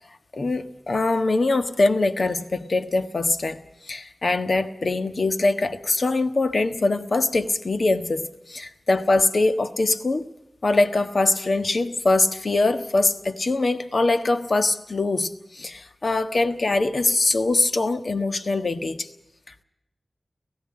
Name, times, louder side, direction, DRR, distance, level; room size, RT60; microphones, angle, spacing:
voice 1, 0.3-10.3 10.6-19.1, left 2 dB, 60° left, 9 dB, 1.3 m, -23 dB
17.5 x 15.0 x 9.8 m, 0.88 s
wide cardioid pair, 65°, 0 cm